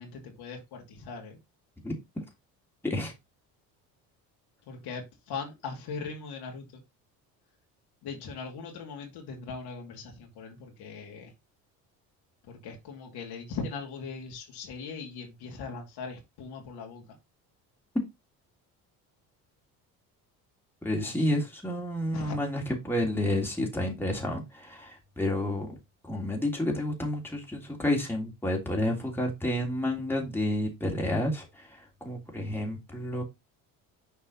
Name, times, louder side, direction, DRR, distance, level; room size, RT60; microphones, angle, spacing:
voice 1, 0.0-1.4 4.7-6.8 8.0-11.3 12.5-17.0 21.0-21.4 22.1-22.4, left 4 dB, 65° left, 2.9 m, -40 dB
voice 2, 2.8-3.1 20.8-25.8 26.0-33.2, left 1 dB, 5° left, 3.1 m, -30 dB
6.8 x 4.7 x 4.1 m
hypercardioid pair, 70°, 42 cm